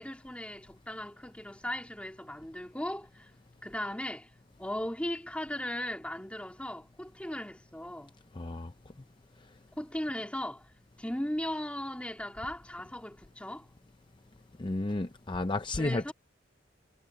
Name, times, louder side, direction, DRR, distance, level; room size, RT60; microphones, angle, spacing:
voice 1, 0.0-3.3 3.6-4.3 4.6-8.1 9.8-10.7 11.0-13.7 15.8-16.1, left 1 dB, 5° left, 2.4 m, -37 dB
voice 2, 8.4-8.7 14.6-16.1, left 2 dB, 25° left, 0.6 m, -32 dB
head